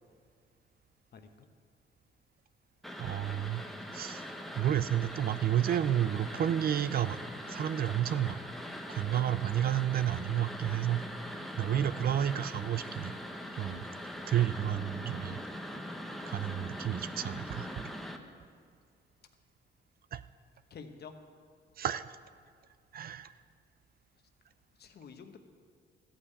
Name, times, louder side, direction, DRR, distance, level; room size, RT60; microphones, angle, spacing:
voice 1, 1.1-1.5 11.6-12.2 20.7-21.1 24.8-25.4, left 5 dB, 55° left, 6 dB, 1.1 m, -48 dB
sound 1, 2.8-18.2, equal, ahead, 0.9 m, -42 dB
voice 2, 3.0-3.6 3.9-4.2 4.6-7.2 7.5-8.4 8.9-11.0 11.5-13.1 13.6-13.9 14.3-15.4 16.3-17.7 20.1-20.2 21.8-22.2 22.9-23.3, right 11 dB, 50° right, 15 dB, 0.4 m, -31 dB
13.5 x 5.6 x 8.3 m, 2.1 s
cardioid pair, 90°, 20 cm